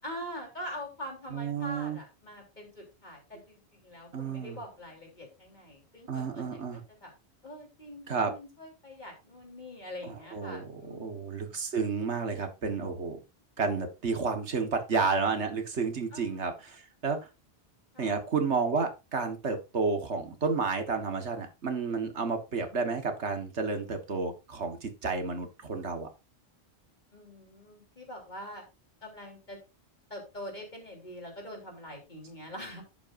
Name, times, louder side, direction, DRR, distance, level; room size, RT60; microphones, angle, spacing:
voice 1, 0.0-6.6 6.9-7.1 7.4-11.6 16.1-16.4 17.9-18.2 27.1-28.7 29.0-29.6 30.1-32.8, equal, 40° left, 0 dB, 3.8 m, -44 dB
voice 2, 1.3-2.0 4.1-4.6 6.1-6.8 8.1-8.3 10.0-13.2 13.6-17.3 18.0-26.1, right 4 dB, 90° right, 6 dB, 1.9 m, -31 dB
11.0 x 8.2 x 2.7 m, 0.27 s
omnidirectional pair, 1.1 m